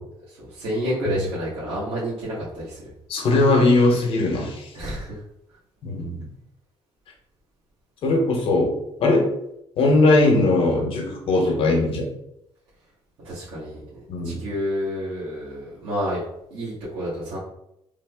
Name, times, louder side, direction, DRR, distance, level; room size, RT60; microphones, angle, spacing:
voice 1, 0.3-2.9 4.7-5.2 13.2-16.2 16.5-17.4, equal, 65° right, -10 dB, 1.2 m, -29 dB
voice 2, 3.1-4.7 5.8-6.2 8.0-8.7 9.0-9.3 9.8-12.1 14.1-14.4, left 2 dB, 60° left, 1 dB, 0.8 m, -19 dB
3.3 x 2.0 x 3.4 m, 0.80 s
cardioid pair, 150°, 11 cm